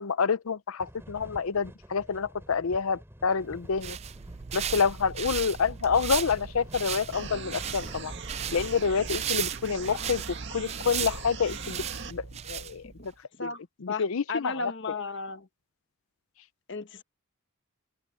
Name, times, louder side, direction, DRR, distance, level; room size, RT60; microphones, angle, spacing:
voice 1, 0.0-4.0 4.5-8.1 8.5-10.2 10.5-12.8 13.4-13.5 13.8-14.5, left 5 dB, 75° left, 0.6 m, -28 dB
sound 1, 0.8-8.8, equal, 10° right, 5.4 m, -50 dB
sound 2, 3.6-13.1, right 8 dB, 30° right, 0.4 m, -36 dB
sound 3, 7.1-12.1, right 5 dB, 55° right, 2.2 m, -41 dB
voice 2, 13.9-15.5 16.7-17.0, left 4 dB, 55° left, 1.3 m, -35 dB
open air
head